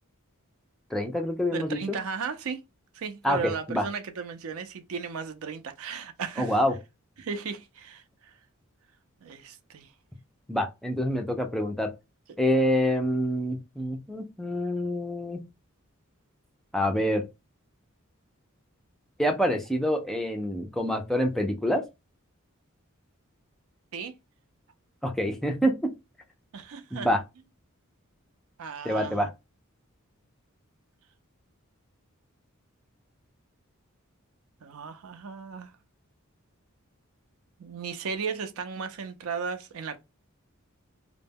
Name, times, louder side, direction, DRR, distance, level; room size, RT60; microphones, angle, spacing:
voice 1, 0.9-2.0 3.2-3.8 6.4-6.7 10.5-11.9 12.4-15.4 16.7-17.3 19.2-21.8 25.0-25.9 26.9-27.2 28.8-29.3, equal, ahead, 0.3 m, -26 dB
voice 2, 1.5-2.6 2.9-6.6 7.2-8.3 9.2-9.9 23.9-24.1 26.5-27.1 28.6-29.3 34.6-35.7 37.6-40.0, right 5 dB, 75° right, 0.4 m, -35 dB
2.1 x 2.0 x 3.4 m
head